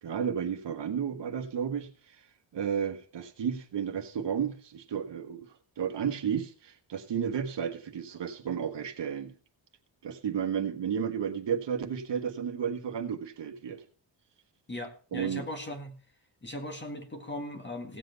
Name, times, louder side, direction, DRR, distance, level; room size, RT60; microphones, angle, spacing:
voice 1, 0.0-2.1 2.5-5.5 5.8-9.3 10.0-13.8 15.1-15.4, right 7 dB, 60° right, 6 dB, 1.4 m, -32 dB
voice 2, 14.7-16.0 16.4-18.0, left 1 dB, 20° left, 5 dB, 1.8 m, -38 dB
17.0 x 7.7 x 4.0 m, 0.39 s
cardioid pair, 115°, 48 cm